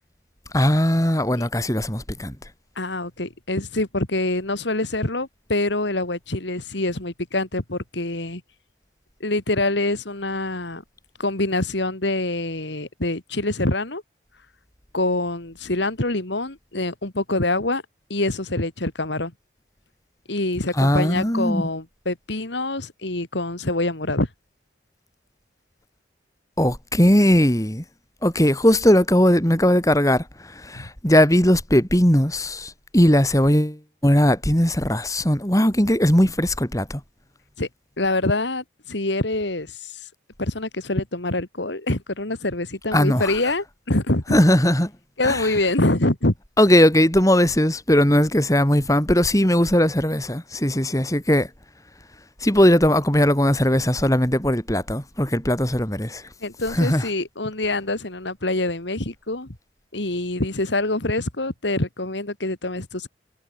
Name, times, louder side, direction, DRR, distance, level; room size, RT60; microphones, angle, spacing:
voice 1, 0.5-2.4 20.8-21.6 26.6-27.8 28.2-37.0 42.9-43.3 44.3-44.9 45.2-45.5 46.6-51.5 52.4-56.3 56.7-57.1, equal, 15° left, 4.3 m, -19 dB
voice 2, 2.8-8.4 9.2-10.8 11.2-14.0 14.9-17.8 18.1-19.3 20.3-24.3 30.7-30.9 37.6-37.7 38.0-40.1 40.4-44.4 45.2-46.3 56.4-59.5 59.9-63.1, left 2 dB, 70° left, 2.6 m, -25 dB
head